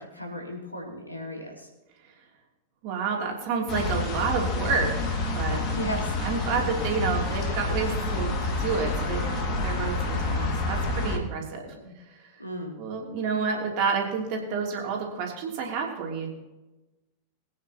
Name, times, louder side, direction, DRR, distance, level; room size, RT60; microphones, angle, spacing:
voice 1, 0.0-1.7 5.7-6.1 11.7-11.9 12.4-12.7, equal, 85° left, 0 dB, 2.9 m, -35 dB
voice 2, 2.8-5.6 6.2-11.7 12.8-16.3, right 5 dB, 45° right, 0 dB, 3.1 m, -29 dB
sound 1, 3.7-11.2, left 3 dB, 35° left, 2.2 m, -28 dB
22.0 x 9.4 x 3.0 m, 1.1 s
figure-of-eight pair, 90°, 0 cm